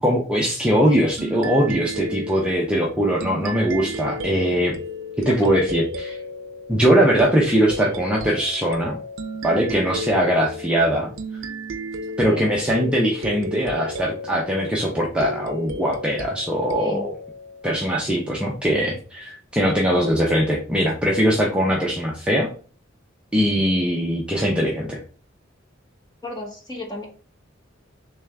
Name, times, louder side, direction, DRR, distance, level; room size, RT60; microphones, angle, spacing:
voice 1, 0.0-4.7 5.2-6.2 6.7-9.0 9.4-11.1 12.2-17.1 17.6-22.5 23.3-25.0, equal, 5° right, -3 dB, 0.5 m, -21 dB
sound 1, 1.2-18.3, equal, 70° right, 0.5 m, -34 dB
voice 2, 26.2-27.1, left 1 dB, 20° left, -2 dB, 1.2 m, -34 dB
3.4 x 3.3 x 3.4 m, 0.40 s
head